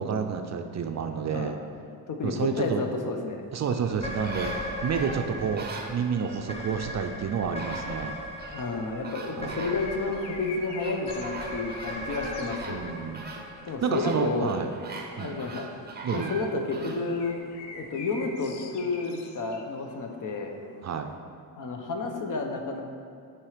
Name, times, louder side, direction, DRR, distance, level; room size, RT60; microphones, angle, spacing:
voice 1, 0.0-1.6 2.2-2.8 3.5-4.5 4.8-8.1 9.4-9.5 12.7-13.3 13.8-14.7 15.2-15.4 16.0-16.3 20.8-21.1, right 6 dB, 40° right, 5 dB, 0.5 m, -29 dB
voice 2, 2.1-3.4 8.5-12.8 13.7-14.5 15.2-15.7 16.1-17.4 17.7-20.6 21.6-22.8, left 3 dB, 50° left, 4 dB, 0.9 m, -31 dB
sound 1, 3.6-6.4 7.2-7.3 7.6-8.7 9.0-10.2 10.8-17.0 17.5-17.6, right 3 dB, 25° right, 0.9 m, -42 dB
sound 2, 3.9-14.4, left 1 dB, 15° left, 0.9 m, -38 dB
sound 3, 7.4-21.2, left 3 dB, 80° left, 0.9 m, -48 dB
7.4 x 4.6 x 5.0 m, 2.3 s
cardioid pair, 105°, 42 cm